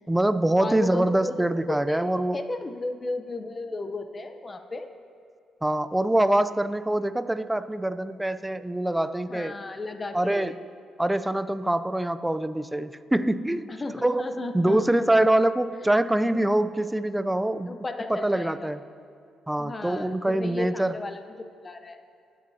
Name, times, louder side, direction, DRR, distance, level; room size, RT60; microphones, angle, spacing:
voice 1, 0.1-2.4 5.6-9.5 10.1-10.5 11.0-13.7 14.0-17.7 18.1-18.8 19.5-20.9, right 1 dB, 10° right, 12 dB, 0.4 m, -24 dB
voice 2, 0.6-2.0 2.3-4.9 9.3-10.6 13.7-14.9 15.4-15.5 17.7-18.7 19.6-21.3 21.6-22.0, left 2 dB, 30° left, 7 dB, 0.7 m, -34 dB
19.5 x 8.2 x 2.8 m, 2.4 s
cardioid pair, 90°, 0 cm